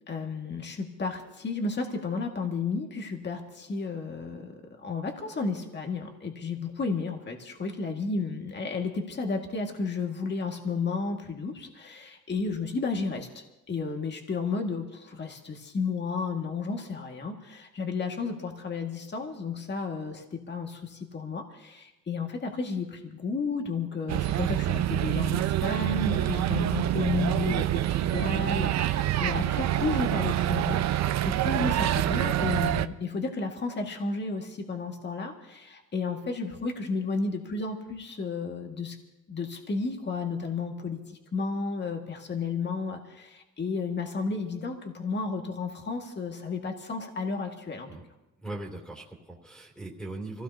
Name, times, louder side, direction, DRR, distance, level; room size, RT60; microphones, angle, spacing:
voice 1, 0.1-30.8 31.3-39.0 39.3-47.9, left 4 dB, 35° left, 3 dB, 1.9 m, -32 dB
sound 1, 24.1-32.9, right 13 dB, 60° right, 0.6 m, -26 dB
voice 2, 48.4-50.4, right 2 dB, 5° left, 0 dB, 2.9 m, -39 dB
25.0 x 16.5 x 2.8 m, 0.97 s
cardioid pair, 90°, 30 cm